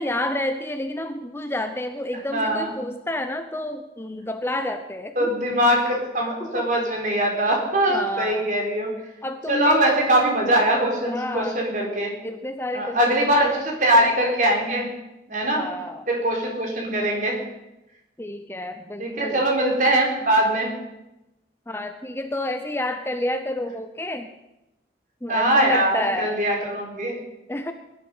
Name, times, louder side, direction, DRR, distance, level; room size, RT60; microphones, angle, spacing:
voice 1, 0.0-5.3 6.4-6.7 7.9-8.6 9.2-9.8 11.1-11.6 12.2-13.1 13.4-13.6 15.5-16.1 18.2-19.4 21.7-24.3 25.2-26.4 27.5-27.7, left 1 dB, 15° left, 8 dB, 0.7 m, -29 dB
voice 2, 2.3-2.7 5.2-8.9 9.5-12.1 12.7-14.9 15.3-15.7 16.1-17.4 19.0-20.7 25.3-27.2, right 1 dB, 45° right, 0 dB, 4.2 m, -22 dB
20.0 x 11.5 x 5.6 m, 0.93 s
head